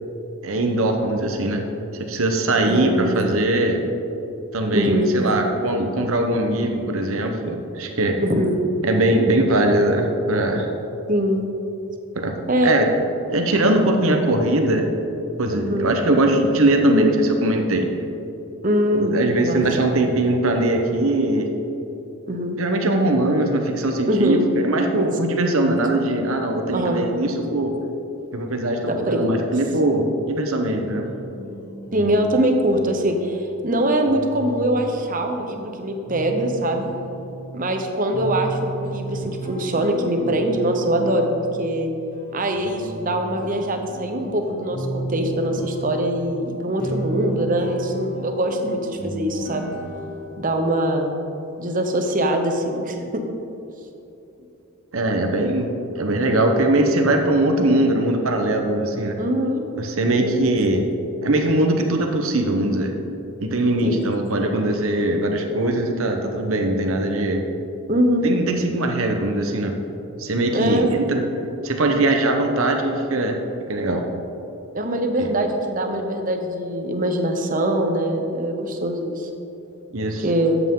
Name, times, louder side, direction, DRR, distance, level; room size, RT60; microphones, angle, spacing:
voice 1, 0.4-1.6 2.1-3.8 4.5-8.2 8.8-10.7 12.1-12.3 12.6-12.9 13.3-14.9 15.4-17.9 18.9-21.5 22.6-27.7 28.3-31.1 54.9-59.2 59.7-60.9 61.2-62.9 63.4-67.4 68.2-69.7 70.2-71.2 71.6-73.4 73.7-74.1 75.2-75.3 79.9-80.2, right 1 dB, 65° right, 3 dB, 1.0 m, -21 dB
voice 2, 2.6-3.0 4.7-5.1 8.2-8.6 11.1-11.4 12.5-12.7 15.5-15.9 18.6-19.6 22.3-22.6 24.1-24.4 24.8-24.9 25.4-25.7 26.7-27.0 28.9-29.3 31.9-36.9 37.5-41.3 41.6-41.9 42.3-49.7 50.4-51.2 51.6-53.2 59.2-59.6 60.2-60.5 63.8-64.1 67.9-68.3 70.5-70.9 74.7-79.3 80.2-80.6, right 1 dB, 40° right, 4 dB, 1.0 m, -23 dB
sound 1, 30.7-50.5, right 2 dB, 40° left, 2.3 m, -34 dB
13.0 x 8.1 x 3.8 m, 2.9 s
head